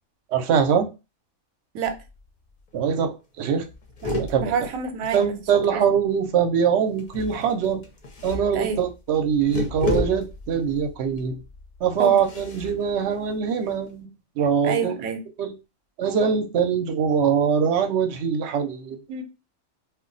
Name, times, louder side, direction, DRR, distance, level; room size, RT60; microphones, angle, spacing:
voice 1, 0.3-0.9 2.7-3.6 4.2-4.5 5.1-7.8 8.2-11.4 11.8-14.1 14.4-15.0 15.4-15.5 16.0-19.0, right 7 dB, 65° right, 0.8 m, -23 dB
sound 1, 1.8-2.3 2.6-2.7 3.0-3.2 3.5-5.9 7.0-13.9, left 1 dB, 45° left, 0.6 m, -33 dB
voice 2, 4.4-5.9 8.5-8.8 12.0-12.2 14.6-15.2 19.1-19.2, right 6 dB, 90° right, 1.0 m, -28 dB
2.3 x 2.2 x 3.8 m
omnidirectional pair, 1.4 m